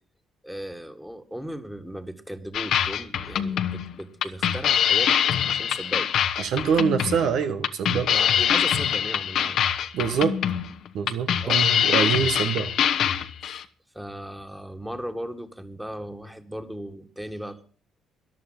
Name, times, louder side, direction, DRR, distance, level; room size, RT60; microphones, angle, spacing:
voice 1, 0.4-5.1 5.5-6.1 8.1-9.6 11.4-11.6 13.4-13.6 13.9-17.6, equal, 5° right, 2.0 m, -37 dB
sound 1, 2.5-13.6, left 9 dB, 70° left, 1.0 m, -24 dB
voice 2, 6.4-8.1 9.9-10.4 10.9-12.7, right 7 dB, 70° right, 1.1 m, -25 dB
13.5 x 11.0 x 5.8 m
supercardioid pair, 60°, 0 cm